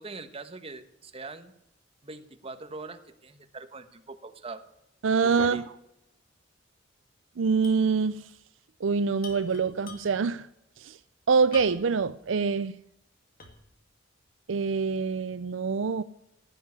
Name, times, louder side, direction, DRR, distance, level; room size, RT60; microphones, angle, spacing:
voice 1, 0.0-1.5 2.0-4.6 5.2-5.6, right 3 dB, 30° right, 1.3 m, -42 dB
voice 2, 5.0-5.6 7.4-8.2 8.8-10.5 10.8-11.0 11.3-12.7 14.5-16.0, right 5 dB, 80° right, 0.5 m, -25 dB
sound 1, 7.6-7.9 8.2-8.3 9.2-10.3 11.5-12.0 12.5-12.6 13.4-13.8, left 5 dB, 50° left, 2.5 m, -45 dB
16.0 x 7.6 x 9.7 m
head